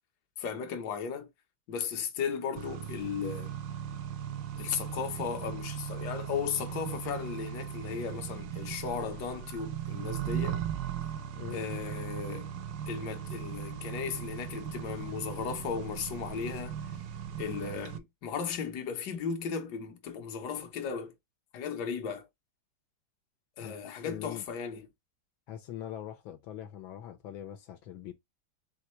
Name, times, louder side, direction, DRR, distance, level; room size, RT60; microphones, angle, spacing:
voice 1, 0.4-1.3 1.7-3.5 4.6-10.6 11.5-12.5 12.9-16.8 17.4-21.1 21.5-22.3 23.6-24.9, left 6 dB, 60° left, 1.3 m, -36 dB
Accelerating revving vroom, 2.6-18.0, right 9 dB, 75° right, 1.1 m, -38 dB
voice 2, 23.6-24.5 25.5-28.1, left 11 dB, 80° left, 1.5 m, -42 dB
4.3 x 3.3 x 3.0 m
omnidirectional pair, 2.2 m